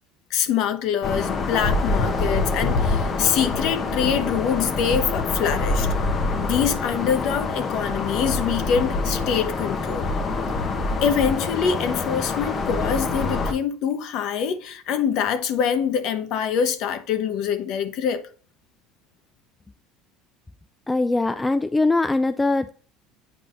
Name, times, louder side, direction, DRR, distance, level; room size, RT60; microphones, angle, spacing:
voice 1, 0.3-5.9 6.4-10.1 11.0-18.2, left 7 dB, 65° left, 1.0 m, -24 dB
sound 1, 1.0-13.5, left 3 dB, 35° left, 1.0 m, -25 dB
voice 2, 20.9-22.7, left 2 dB, 15° left, 0.3 m, -21 dB
8.3 x 4.9 x 2.6 m
supercardioid pair, 105°, 0 cm